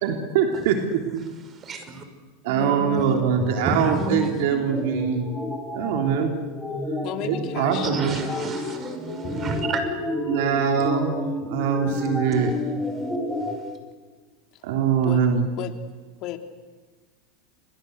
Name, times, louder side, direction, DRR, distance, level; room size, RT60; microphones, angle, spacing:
voice 1, 0.0-1.3 2.4-5.3 5.7-6.3 7.2-8.2 10.3-12.5 14.6-15.5, right 7 dB, 70° right, 4 dB, 3.4 m, -23 dB
voice 2, 1.6-2.0 3.6-4.2 7.9-9.8, right 3 dB, 30° right, 8 dB, 5.8 m, -31 dB
sound 1, 2.5-13.6, left 1 dB, ahead, 5.4 m, -30 dB
voice 3, 2.6-3.2 7.0-8.8 14.5-14.7 15.0-15.2 15.6-15.7 16.2-16.4, left 12 dB, 50° left, 6 dB, 3.4 m, -35 dB
29.5 x 22.5 x 8.2 m, 1.4 s
supercardioid pair, 120°, 0 cm